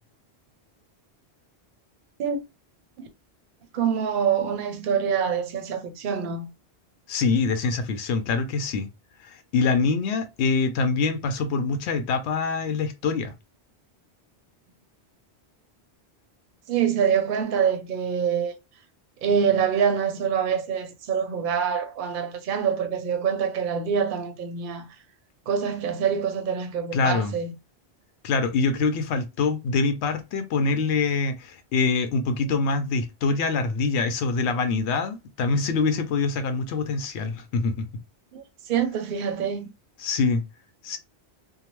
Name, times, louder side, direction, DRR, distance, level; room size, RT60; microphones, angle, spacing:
voice 1, 3.7-6.5 16.7-18.5 19.2-24.9 25.5-27.5 38.3-39.7, right 7 dB, 55° right, 0.7 m, -25 dB
voice 2, 7.1-8.9 9.2-13.3 26.9-27.3 28.2-37.9 40.0-40.4 40.8-41.0, left 4 dB, 80° left, 0.8 m, -25 dB
2.7 x 2.0 x 3.0 m
omnidirectional pair, 1.1 m